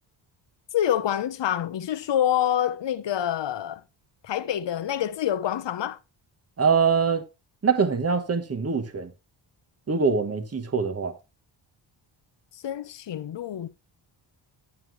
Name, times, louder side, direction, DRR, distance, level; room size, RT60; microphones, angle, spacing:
voice 1, 0.7-3.8 4.2-6.0 12.5-13.7, left 10 dB, 65° left, 1.0 m, -26 dB
voice 2, 6.6-7.2 7.6-9.1 9.9-11.1, right 5 dB, 30° right, 1.5 m, -23 dB
9.3 x 8.7 x 3.3 m
cardioid pair, 80°, 47 cm